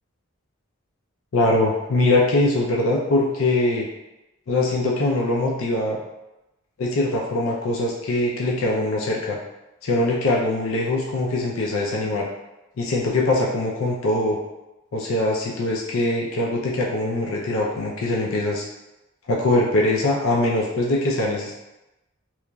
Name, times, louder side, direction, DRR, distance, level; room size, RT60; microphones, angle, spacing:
voice 1, 1.3-3.9 4.5-6.0 6.8-9.4 9.8-12.3 12.8-14.4 14.9-18.6 19.3-21.5, left 2 dB, 75° left, -2 dB, 0.4 m, -22 dB
3.0 x 2.4 x 2.2 m, 0.96 s
head